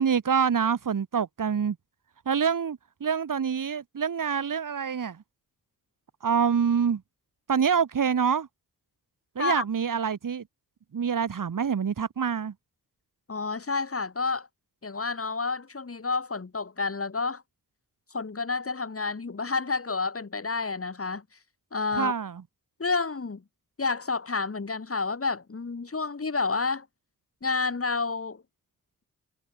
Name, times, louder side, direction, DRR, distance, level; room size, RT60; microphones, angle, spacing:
voice 1, 0.0-1.8 2.3-5.2 6.2-7.0 7.5-8.5 9.4-10.4 10.9-12.5 21.9-22.4, right 7 dB, 65° right, 2.4 m, -26 dB
voice 2, 13.3-14.5 14.8-17.4 18.1-21.2 21.7-22.1 22.8-23.4 23.8-26.9 27.4-28.4, left 4 dB, 40° left, 5.2 m, -29 dB
cardioid pair, 80°, 34 cm